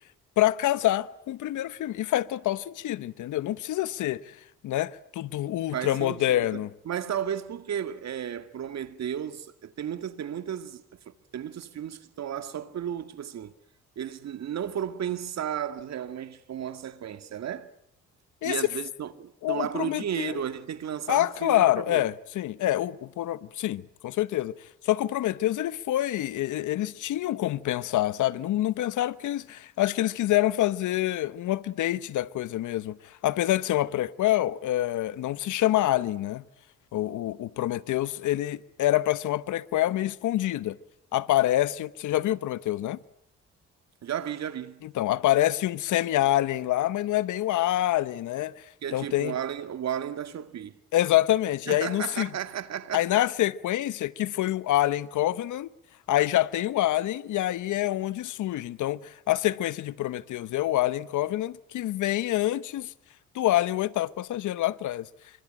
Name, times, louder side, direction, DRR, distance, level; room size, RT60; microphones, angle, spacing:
voice 1, 0.4-4.4 4.6-6.7 18.4-18.6 19.4-20.4 21.1-24.5 24.8-36.4 36.9-40.8 41.1-43.0 44.8-48.5 48.9-49.4 50.9-52.3 52.9-55.7 56.1-62.9 63.3-65.1, left 14 dB, 80° left, 1.1 m, -26 dB
voice 2, 5.7-6.6 6.9-13.5 14.0-17.7 18.4-22.1 44.0-44.8 48.8-50.8 51.7-53.0, right 9 dB, 60° right, 2.0 m, -34 dB
26.5 x 24.5 x 8.9 m
cardioid pair, 90°, 30 cm